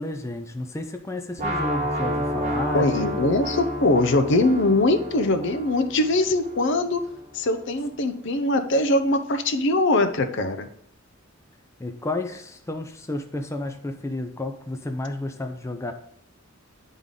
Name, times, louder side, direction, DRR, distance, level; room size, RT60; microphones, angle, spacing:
voice 1, 0.0-2.9 11.8-15.9, left 2 dB, 15° left, 5 dB, 0.5 m, -31 dB
sound 1, 1.4-7.3, equal, 35° right, 1.1 m, -30 dB
voice 2, 2.7-7.0 7.3-10.7, left 2 dB, 60° left, 8 dB, 0.6 m, -22 dB
9.8 x 3.6 x 3.8 m, 0.70 s
head